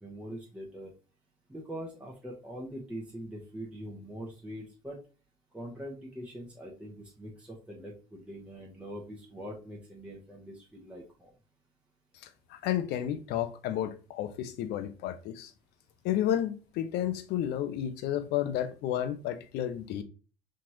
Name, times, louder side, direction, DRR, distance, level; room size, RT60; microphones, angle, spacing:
voice 1, 0.0-0.9 1.5-5.0 5.5-11.3, equal, 5° right, 1.2 m, -43 dB
voice 2, 12.5-15.5 16.0-20.0, left 11 dB, 60° left, 0.6 m, -31 dB
4.3 x 3.0 x 2.8 m
hypercardioid pair, 65°, 19 cm